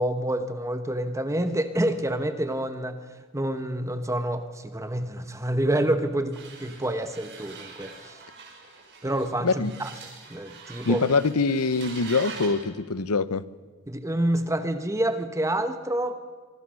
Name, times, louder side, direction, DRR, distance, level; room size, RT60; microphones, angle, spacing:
voice 1, 0.0-3.0 3.3-8.2 9.0-9.9 10.3-11.1 13.9-16.1, right 1 dB, 15° right, 9 dB, 1.1 m, -27 dB
sound 1, 6.3-12.6, right 4 dB, 55° right, 5.9 m, -44 dB
voice 2, 10.8-13.4, left 4 dB, 80° left, 16 dB, 0.9 m, -24 dB
25.0 x 24.0 x 6.4 m, 1.5 s
head